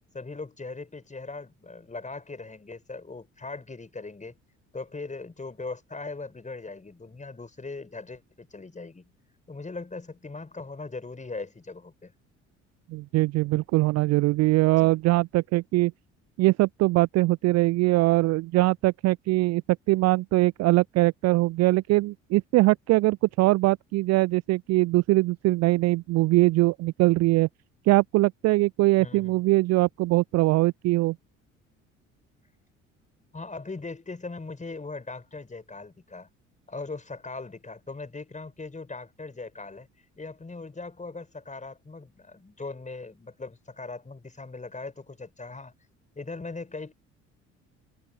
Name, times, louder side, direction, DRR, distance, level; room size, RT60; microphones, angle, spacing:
voice 1, 0.1-4.4 4.7-9.1 9.5-12.1 14.8-15.0 29.0-29.4 33.3-36.3 36.7-39.9 40.2-45.7 46.1-46.9, left 3 dB, 20° left, 6.2 m, -39 dB
voice 2, 12.9-15.9 16.4-19.6 19.9-27.5 27.9-31.2, right 20 dB, 45° right, 0.5 m, -22 dB
figure-of-eight pair, 50°, 38 cm